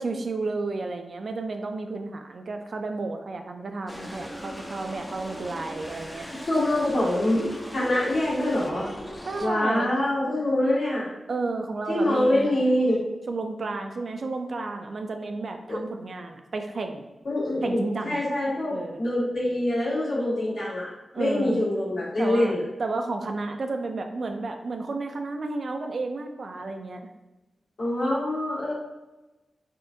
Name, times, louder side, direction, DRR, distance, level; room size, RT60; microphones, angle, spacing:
voice 1, 0.0-6.3 9.3-10.0 11.3-12.5 13.3-17.1 17.6-18.2 18.7-19.0 21.1-21.6 22.2-22.5 22.8-27.0, right 3 dB, 60° right, 5 dB, 0.3 m, -32 dB
sound 1, 3.9-9.5, equal, 10° left, 0.4 m, -39 dB
voice 2, 6.5-8.9 9.4-11.1 11.9-13.0 15.7-15.8 17.2-20.9 21.2-22.6 27.8-28.7, left 1 dB, 65° left, -8 dB, 1.5 m, -25 dB
3.5 x 2.5 x 2.7 m, 1.1 s
wide cardioid pair, 100°, 0 cm